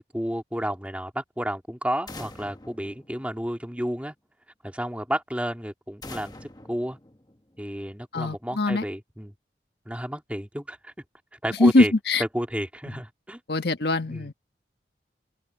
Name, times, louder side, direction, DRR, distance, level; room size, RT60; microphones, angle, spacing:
voice 1, 0.0-4.1 4.6-7.0 7.6-9.3 9.9-10.9 11.3-11.9 12.2-13.4 14.1-14.3, equal, 10° right, 2.3 m, -31 dB
sound 1, 2.1-3.9 6.0-7.8, left 2 dB, 20° left, 1.1 m, -45 dB
voice 2, 8.1-8.8 11.6-12.2 13.5-14.3, left 2 dB, 70° left, 1.3 m, -22 dB
head